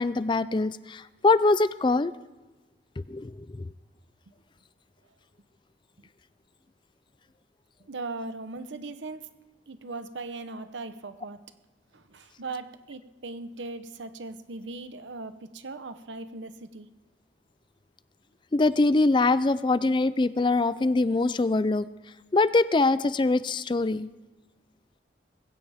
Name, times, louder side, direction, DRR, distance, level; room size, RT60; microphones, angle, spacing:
voice 1, 0.0-2.1 3.1-3.5 18.5-21.9 22.3-24.1, left 3 dB, 25° left, 16 dB, 0.4 m, -23 dB
voice 2, 7.8-11.5 11.9-16.9, right 3 dB, 85° right, 10 dB, 0.9 m, -39 dB
21.0 x 16.5 x 3.6 m, 1.2 s
head